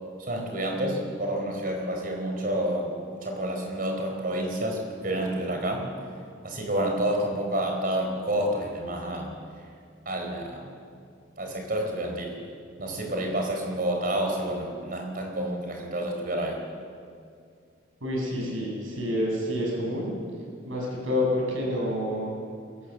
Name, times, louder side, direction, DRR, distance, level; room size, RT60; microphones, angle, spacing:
voice 1, 0.2-5.9 6.4-9.3 10.1-10.7 11.4-12.4 12.8-16.6, right 1 dB, 45° right, 2 dB, 4.3 m, -29 dB
voice 2, 18.0-20.2 20.7-22.4, left 1 dB, 90° right, -2 dB, 7.1 m, -28 dB
22.5 x 17.0 x 7.7 m, 2.2 s
head